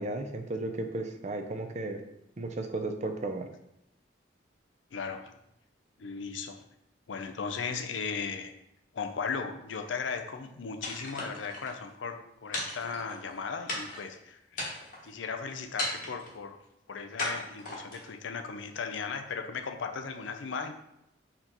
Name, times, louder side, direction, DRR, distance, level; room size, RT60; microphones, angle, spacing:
voice 1, 0.0-2.0 2.4-3.5, right 2 dB, 40° right, 6 dB, 0.5 m, -34 dB
voice 2, 4.9-5.3 6.0-6.6 7.1-8.5 8.9-14.6 15.0-16.6 16.9-20.7, left 5 dB, 85° left, 6 dB, 0.5 m, -37 dB
sound 1, 10.8-11.7 12.5-13.3 13.7-14.1 14.5-15.1 15.8-16.3 17.2-18.1, left 1 dB, 45° left, 1.1 m, -36 dB
4.3 x 2.9 x 3.9 m, 0.81 s
head